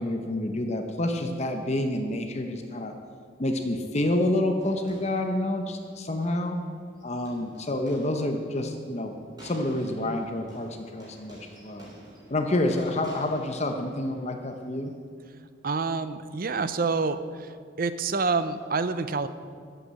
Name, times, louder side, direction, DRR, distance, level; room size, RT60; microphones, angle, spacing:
voice 1, 0.0-2.9 3.4-6.6 7.0-9.1 9.4-11.9 12.3-14.9, left 1 dB, 35° left, 4 dB, 0.9 m, -28 dB
sound 1, 4.6-14.9, right 1 dB, 20° right, 3.4 m, -51 dB
voice 2, 15.6-17.5 17.8-19.3, right 4 dB, 45° right, 12 dB, 0.6 m, -27 dB
11.5 x 8.1 x 7.6 m, 2.1 s
head